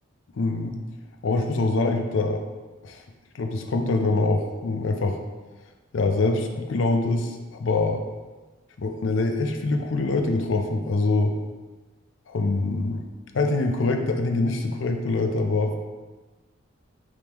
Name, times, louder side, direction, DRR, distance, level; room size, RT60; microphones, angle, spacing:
voice 1, 0.3-0.8 1.2-2.4 2.8-3.0 3.3-5.2 5.9-8.0 8.8-11.4 12.3-13.0 13.3-15.7, left 3 dB, 70° left, 5 dB, 0.5 m, -24 dB
4.8 x 3.6 x 2.9 m, 1.3 s
head